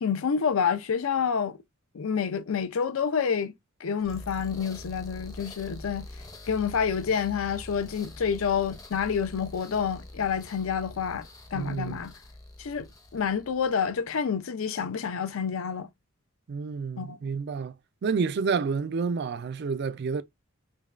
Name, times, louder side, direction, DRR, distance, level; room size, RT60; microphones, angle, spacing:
voice 1, 0.0-1.6 1.9-3.5 3.8-6.1 6.5-12.1 12.6-12.9 13.1-15.9 17.0-17.2, left 6 dB, 75° left, 0.5 m, -28 dB
sound 1, 4.0-14.0, left 1 dB, 15° left, 0.6 m, -45 dB
voice 2, 11.5-12.0 16.5-17.7 18.0-20.2, right 5 dB, 50° right, 0.3 m, -29 dB
5.1 x 2.2 x 2.4 m
head